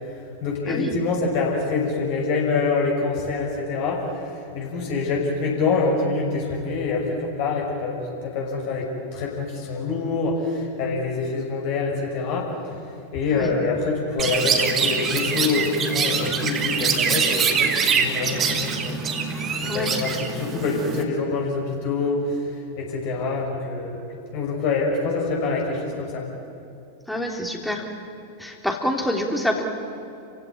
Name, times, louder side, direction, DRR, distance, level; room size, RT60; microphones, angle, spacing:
voice 1, 0.4-12.7 13.1-19.0 19.6-22.3 22.8-24.0 24.3-26.2, left 4 dB, 45° left, -1 dB, 6.0 m, -25 dB
Chirp tweet, 14.2-21.0, right 5 dB, 25° right, 2.4 m, -24 dB
voice 2, 27.1-27.9 28.4-29.6, left 1 dB, 5° left, 2 dB, 3.3 m, -26 dB
29.5 x 16.0 x 9.6 m, 2.7 s
figure-of-eight pair, 90°, 0 cm